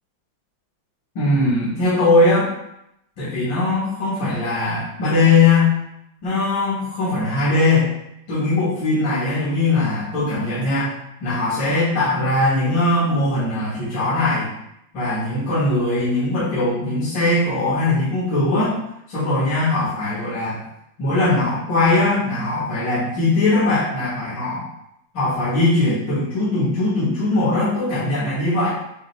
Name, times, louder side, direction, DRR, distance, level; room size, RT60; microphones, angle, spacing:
voice 1, 1.1-2.5 3.2-5.7 6.2-7.9 8.3-10.9 11.2-14.5 14.9-18.8 19.1-20.6 21.0-24.6 25.1-28.7, left 2 dB, 35° left, -12 dB, 2.4 m, -20 dB
9.7 x 4.6 x 2.3 m, 0.81 s
omnidirectional pair, 4.9 m